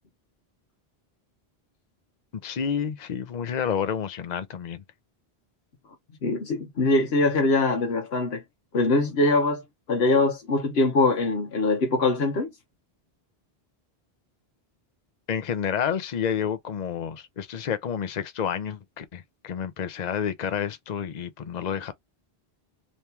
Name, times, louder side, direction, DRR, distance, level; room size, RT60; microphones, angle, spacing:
voice 1, 2.4-4.8 15.3-21.9, left 8 dB, 50° left, 0.7 m, -29 dB
voice 2, 6.2-8.4 8.7-9.6 9.9-12.5, left 2 dB, 85° left, 1.2 m, -23 dB
3.1 x 2.9 x 3.4 m
omnidirectional pair, 1.0 m